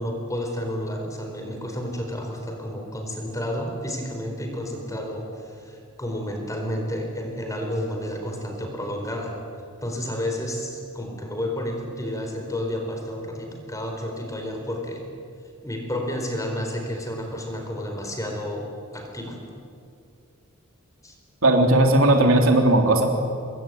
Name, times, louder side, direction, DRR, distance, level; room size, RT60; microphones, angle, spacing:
voice 1, 0.0-9.4 9.8-15.0 15.6-19.4 21.0-21.1, equal, 15° left, 3 dB, 4.5 m, -31 dB
voice 2, 21.4-23.1, right 1 dB, 70° right, 3 dB, 3.3 m, -17 dB
24.5 x 22.0 x 9.4 m, 2.3 s
head